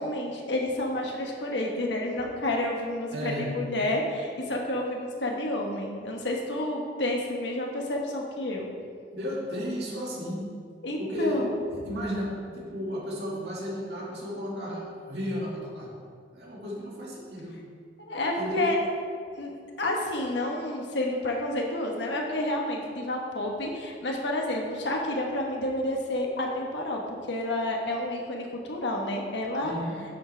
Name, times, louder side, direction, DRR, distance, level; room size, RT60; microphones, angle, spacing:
voice 1, 0.0-8.7 10.8-11.6 18.0-18.8 19.3-27.0 27.3-29.7, left 1 dB, 80° left, 0 dB, 1.3 m, -30 dB
voice 2, 3.1-3.5 9.1-10.5 11.0-11.4 11.7-15.9 16.3-17.6 18.4-18.7 29.6-30.0, equal, 65° right, -4 dB, 2.2 m, -33 dB
9.8 x 7.3 x 3.4 m, 2.1 s
head